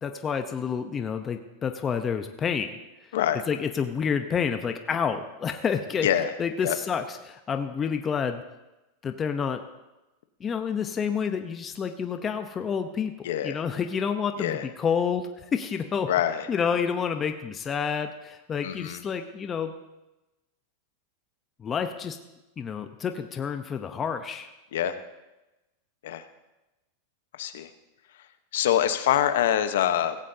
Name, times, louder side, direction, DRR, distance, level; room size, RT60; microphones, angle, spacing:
voice 1, 0.0-2.8 3.5-6.1 6.4-8.4 9.0-9.7 10.4-16.1 16.5-19.7 21.6-22.2 22.6-24.5, left 6 dB, 25° left, 7 dB, 0.9 m, -29 dB
voice 2, 13.2-13.6 14.4-14.6 16.1-16.4 18.6-19.0 24.7-24.9 26.0-26.2 27.4-27.7 28.5-30.2, left 10 dB, 75° left, 10 dB, 1.1 m, -25 dB
17.0 x 15.5 x 2.8 m, 1.0 s
hypercardioid pair, 115°, 0 cm